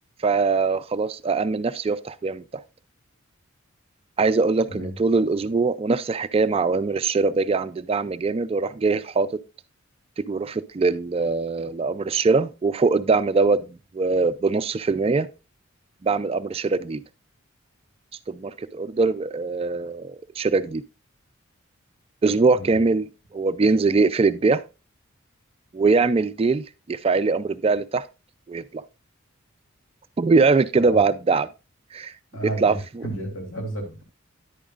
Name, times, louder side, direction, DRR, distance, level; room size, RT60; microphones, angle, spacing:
voice 1, 0.2-2.4 4.2-9.3 10.3-15.3 16.0-17.0 18.3-20.8 22.2-23.1 23.3-24.6 25.7-28.1 28.5-28.8 30.2-31.5 31.9-32.1 32.6-32.7, right 4 dB, 30° right, 0.3 m, -22 dB
voice 2, 32.3-34.0, right 1 dB, 70° left, 3.3 m, -32 dB
10.0 x 8.7 x 2.4 m
head